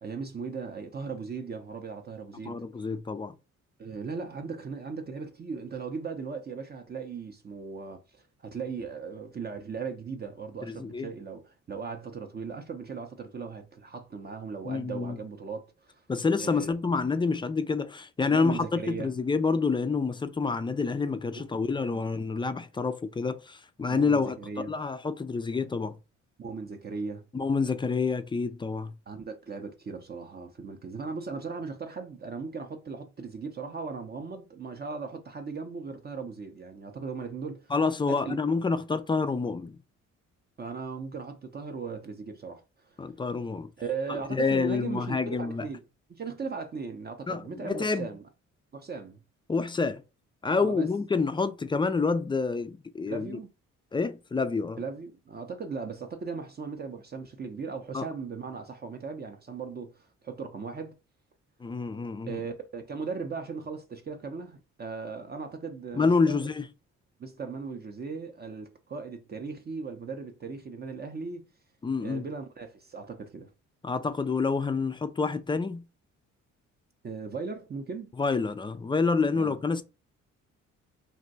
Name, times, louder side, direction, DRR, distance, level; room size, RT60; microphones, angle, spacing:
voice 1, 0.0-2.6 3.8-16.0 16.4-16.7 18.3-19.1 21.3-21.5 23.9-24.7 26.4-27.3 29.1-37.7 38.1-38.4 40.6-42.9 43.8-45.8 46.1-48.3 48.7-49.2 50.5-50.9 53.1-53.5 54.8-60.9 62.3-66.4 67.2-71.5 72.0-73.5 77.0-78.1 79.3-79.6, right 5 dB, 35° right, 0.6 m, -38 dB
voice 2, 2.5-3.3 10.7-11.1 14.6-15.2 16.1-26.0 27.3-28.9 37.7-39.8 43.0-43.7 44.1-45.6 47.3-48.1 49.5-50.0 50.4-53.4 53.9-54.8 57.9-58.1 61.6-62.4 66.0-66.7 71.8-72.2 73.8-75.8 78.2-79.8, left 4 dB, 15° left, 0.3 m, -28 dB
2.6 x 2.1 x 3.9 m
cardioid pair, 90°, 30 cm